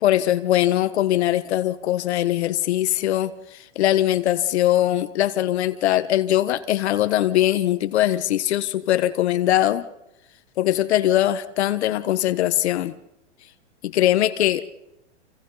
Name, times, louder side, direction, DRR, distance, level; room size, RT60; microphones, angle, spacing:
voice 1, 0.0-3.3 3.7-9.9 10.6-12.9 13.8-14.7, left 13 dB, 65° left, 12 dB, 1.4 m, -21 dB
29.0 x 26.5 x 4.1 m, 0.88 s
hypercardioid pair, 130°, 36 cm